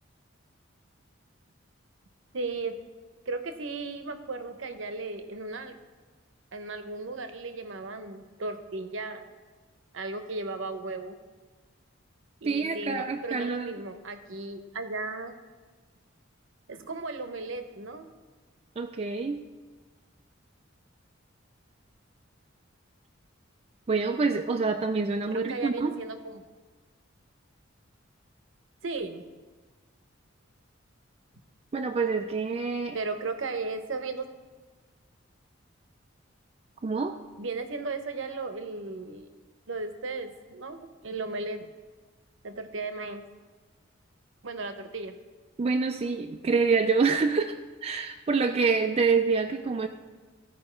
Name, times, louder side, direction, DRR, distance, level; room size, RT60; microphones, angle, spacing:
voice 1, 2.3-2.8 3.3-5.8 6.5-9.2 9.9-11.2 12.4-15.3 16.7-18.1 25.3-26.4 28.8-29.2 32.9-34.3 37.4-39.3 39.7-41.7 42.4-43.2 44.4-45.1, right 3 dB, 65° right, 8 dB, 0.8 m, -35 dB
voice 2, 12.4-13.7 18.8-19.4 23.9-26.0 31.7-33.0 36.8-37.2 45.6-49.9, right 4 dB, 30° right, 5 dB, 0.4 m, -26 dB
15.0 x 5.3 x 4.4 m, 1.4 s
head